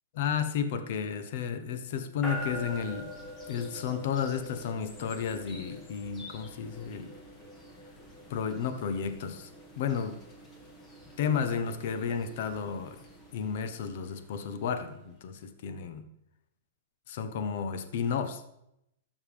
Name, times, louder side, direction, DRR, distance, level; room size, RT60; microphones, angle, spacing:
voice 1, 0.1-3.1 3.5-7.1 8.3-9.5 9.8-10.2 11.2-13.0 13.3-16.0 17.1-18.4, left 7 dB, 60° left, 9 dB, 1.0 m, -32 dB
sound 1, 2.2-15.2, left 1 dB, 20° left, 2.1 m, -46 dB
12.5 x 7.2 x 3.5 m, 0.81 s
hypercardioid pair, 140°, 0 cm